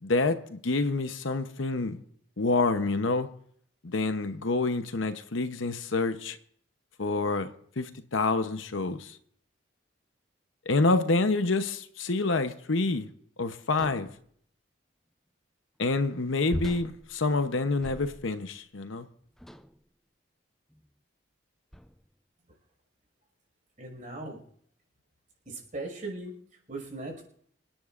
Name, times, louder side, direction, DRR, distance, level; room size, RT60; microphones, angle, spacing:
voice 1, 0.0-2.0 2.4-3.3 3.8-6.4 7.0-7.5 7.8-9.2 10.7-13.1 13.4-14.1 15.8-19.1, left 3 dB, 75° left, 0.9 m, -27 dB
sound 1, 13.8-14.3 16.5-18.5 19.4-19.8 20.7-20.9 21.7-22.1, equal, ahead, 0.4 m, -41 dB
voice 2, 23.8-24.4 25.4-26.4 26.7-27.2, right 2 dB, 40° right, 5.6 m, -38 dB
27.5 x 10.0 x 2.5 m
head